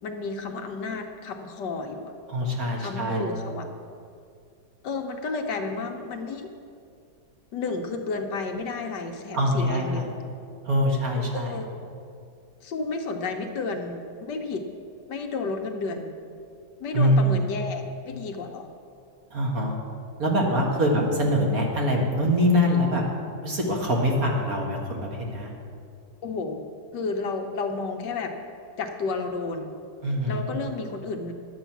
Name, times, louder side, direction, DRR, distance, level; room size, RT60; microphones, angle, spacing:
voice 1, 0.0-2.1 2.8-3.7 4.8-6.5 7.5-10.2 11.3-11.7 12.6-14.6 15.1-16.2 16.8-18.7 20.7-21.1 26.2-26.6 26.9-28.3 28.8-29.7 30.3-31.3, left 3 dB, 70° left, 4 dB, 1.4 m, -32 dB
voice 2, 2.3-3.3 9.3-10.1 10.7-11.6 16.9-17.4 19.3-19.8 20.2-23.0 23.4-25.5 30.0-30.5, equal, 50° right, -1 dB, 1.9 m, -24 dB
11.0 x 8.1 x 5.9 m, 2.3 s
omnidirectional pair, 2.0 m